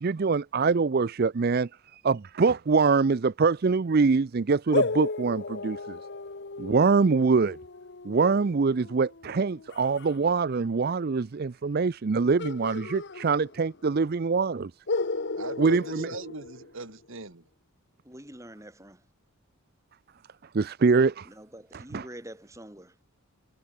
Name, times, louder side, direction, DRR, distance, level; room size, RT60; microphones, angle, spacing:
voice 1, 0.0-6.0 6.6-7.6 8.0-14.7 15.6-16.1 20.5-21.3 21.7-22.1, right 4 dB, 45° right, 0.4 m, -24 dB
sound 1, 4.7-10.2 12.4-13.9 14.1-14.2 14.9-17.1, left 3 dB, 50° left, 0.9 m, -34 dB
voice 2, 15.4-17.4, right 3 dB, 60° right, 2.0 m, -40 dB
voice 3, 18.0-19.0 21.3-22.9, right 1 dB, 15° right, 3.4 m, -45 dB
head